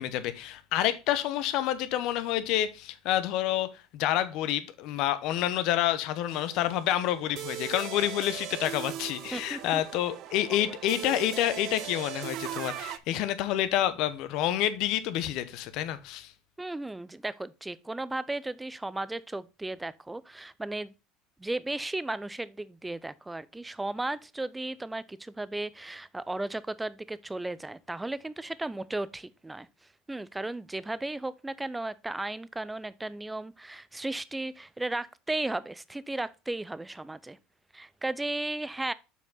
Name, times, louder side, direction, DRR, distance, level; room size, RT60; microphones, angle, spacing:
voice 1, 0.0-3.7 3.9-16.3, left 12 dB, 65° left, 0.9 m, -28 dB
sound 1, 6.3-13.0, right 12 dB, 60° right, 0.5 m, -39 dB
voice 2, 9.3-9.8 10.5-10.6 11.0-11.2 16.6-20.9 21.4-29.7 30.1-37.4 37.7-38.9, right 2 dB, 10° right, 0.5 m, -35 dB
7.2 x 4.4 x 4.1 m
supercardioid pair, 90°, 0 cm